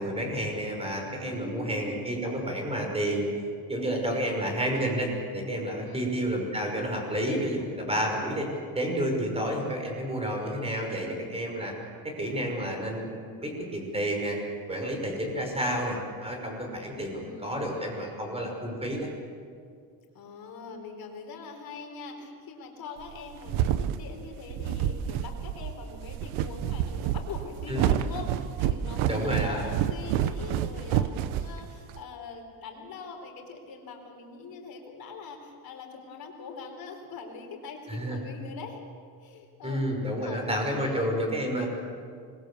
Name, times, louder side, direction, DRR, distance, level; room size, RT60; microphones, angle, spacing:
voice 1, 0.0-3.3 3.7-8.5 8.8-11.7 12.0-14.4 14.7-19.1 27.7-27.9 29.1-29.6 37.9-38.2 39.6-41.7, equal, 10° right, 2 dB, 5.7 m, -30 dB
voice 2, 1.1-2.1 5.8-6.1 16.9-18.0 20.1-38.8 39.2-39.8 40.2-41.2, left 4 dB, 45° left, 3 dB, 4.5 m, -42 dB
sound 1, 23.1-32.0, right 10 dB, 80° right, 1.0 m, -29 dB
26.0 x 21.5 x 7.0 m, 2.2 s
cardioid pair, 140°, 48 cm